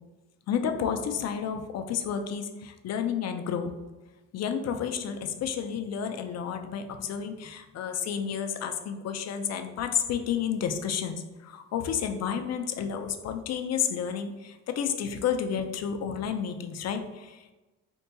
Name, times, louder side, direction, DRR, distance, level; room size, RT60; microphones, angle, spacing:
voice 1, 0.5-3.7 4.3-17.5, left 8 dB, 60° left, 6 dB, 0.5 m, -31 dB
4.5 x 2.7 x 2.2 m, 1.1 s
cardioid pair, 90°, 30 cm